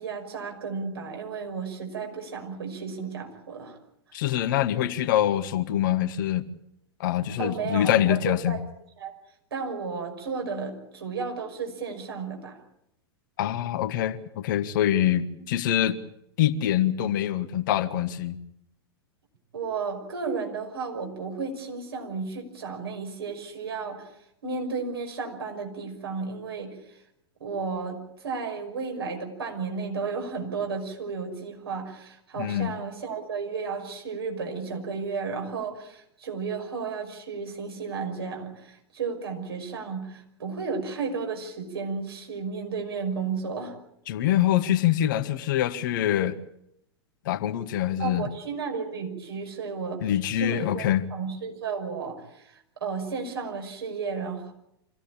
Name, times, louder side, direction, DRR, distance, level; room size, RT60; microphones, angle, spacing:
voice 1, 0.0-3.8 7.4-8.6 9.0-9.1 9.5-12.6 19.5-24.1 24.4-27.0 27.4-43.8 48.0-50.1 50.4-54.5, right 5 dB, 65° right, 5.9 m, -33 dB
voice 2, 4.1-6.5 7.0-8.6 13.4-16.0 16.4-18.4 32.4-32.7 44.1-46.4 47.2-48.2 50.0-51.1, left 11 dB, 50° left, 1.4 m, -25 dB
26.0 x 16.0 x 8.8 m
figure-of-eight pair, 95°, 14 cm